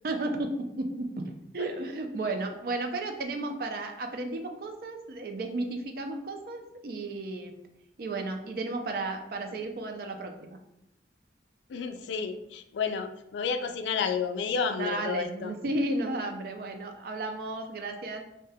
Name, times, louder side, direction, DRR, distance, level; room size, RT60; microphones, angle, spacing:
voice 1, 0.0-1.1 1.5-7.5 8.0-10.6 14.8-18.2, right 2 dB, 55° right, 5 dB, 0.4 m, -33 dB
voice 2, 11.7-15.5, left 6 dB, 85° left, 7 dB, 0.3 m, -31 dB
2.7 x 2.2 x 3.3 m, 0.82 s
head